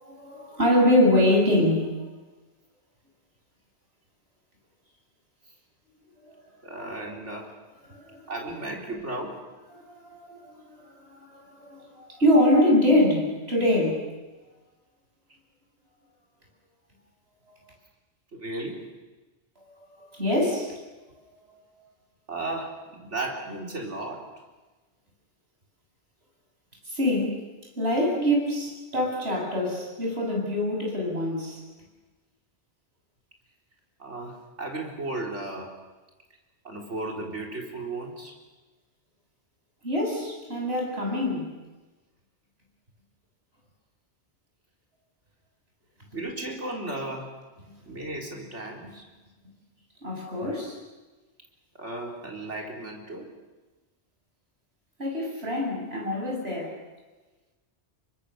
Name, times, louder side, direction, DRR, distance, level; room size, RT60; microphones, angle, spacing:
voice 1, 0.0-2.0 6.3-6.4 7.9-8.3 9.8-14.1 20.2-20.7 21.2-21.6 26.9-27.4 27.8-31.6 39.8-41.5 50.0-50.8 55.0-56.7, left 1 dB, 60° right, -1 dB, 7.7 m, -24 dB
voice 2, 6.6-7.5 8.3-9.4 18.3-18.9 22.3-24.3 34.0-35.8 36.6-38.4 41.0-41.1 46.1-47.4 47.9-49.1 51.8-53.3, right 2 dB, 85° right, 0 dB, 4.4 m, -35 dB
29.5 x 24.0 x 6.8 m, 1.2 s
omnidirectional pair, 1.2 m